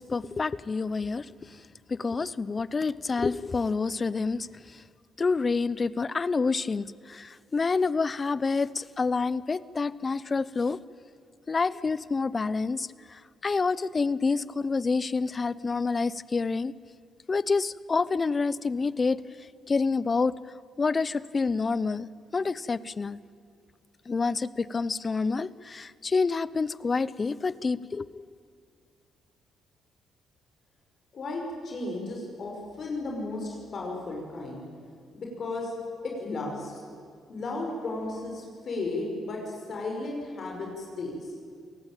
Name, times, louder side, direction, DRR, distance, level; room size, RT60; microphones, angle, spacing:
voice 1, 0.0-1.6 1.9-4.8 5.2-10.8 11.5-16.7 17.3-20.4 20.8-23.2 24.1-28.3, left 4 dB, 30° left, 19 dB, 0.8 m, -28 dB
voice 2, 31.1-34.6 35.1-35.7 36.0-36.8 37.3-41.2, left 2 dB, 50° left, 0 dB, 6.0 m, -34 dB
28.0 x 18.5 x 9.1 m, 2.2 s
cardioid pair, 90°, 0 cm